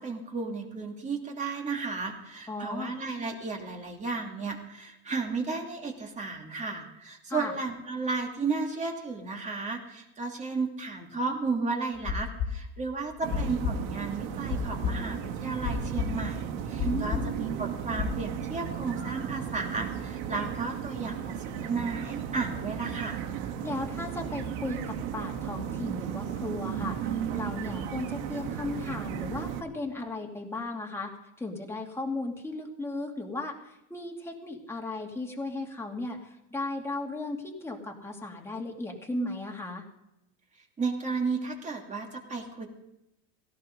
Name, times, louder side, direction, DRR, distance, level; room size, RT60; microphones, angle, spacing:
voice 1, 0.0-23.2 40.8-42.7, right 4 dB, 20° right, 1 dB, 2.8 m, -33 dB
voice 2, 2.5-2.9 7.3-7.5 16.8-17.3 23.6-31.1 31.4-39.8, left 2 dB, 10° left, 0 dB, 2.6 m, -36 dB
sound 1, 12.0-18.1, left 7 dB, 45° left, 2.4 m, -32 dB
sound 2, 13.2-29.6, right 9 dB, 75° right, 1.9 m, -35 dB
18.0 x 16.5 x 3.9 m, 0.87 s
cardioid pair, 145°, 33 cm